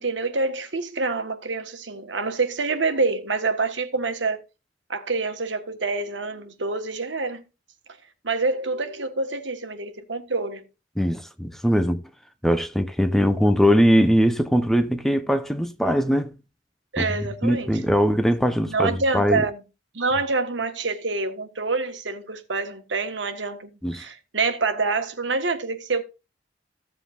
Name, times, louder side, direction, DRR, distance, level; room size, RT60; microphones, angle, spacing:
voice 1, 0.0-4.4 4.9-7.4 8.2-10.6 16.9-17.7 18.7-19.6 19.9-26.0, right 3 dB, 80° right, 1.5 m, -26 dB
voice 2, 11.0-12.0 12.4-16.3 17.0-19.4 23.8-24.1, equal, ahead, 0.8 m, -21 dB
15.0 x 7.7 x 2.6 m
head